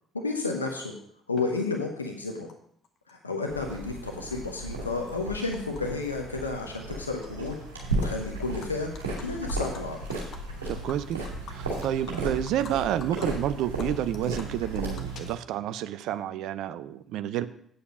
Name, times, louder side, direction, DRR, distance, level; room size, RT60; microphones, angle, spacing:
voice 1, 0.1-0.9 1.3-2.5 3.1-7.5 8.0-8.9 9.2-10.0, left 3 dB, 90° left, 2 dB, 0.8 m, -31 dB
Animal, 1.4-1.5 2.5-2.6 2.8-3.7 4.1-5.8 6.1-6.4 6.7-7.5 7.8-8.1 8.4-12.7 13.0-13.3 13.6-15.7, left 5 dB, 55° left, 1.2 m, -48 dB
sound 1, 3.5-15.3, right 2 dB, 85° right, 2.5 m, -35 dB
voice 2, 10.7-11.2 11.5-17.5, right 11 dB, 65° right, 13 dB, 0.5 m, -29 dB
8.9 x 6.9 x 5.3 m, 0.66 s
figure-of-eight pair, 50°, 0 cm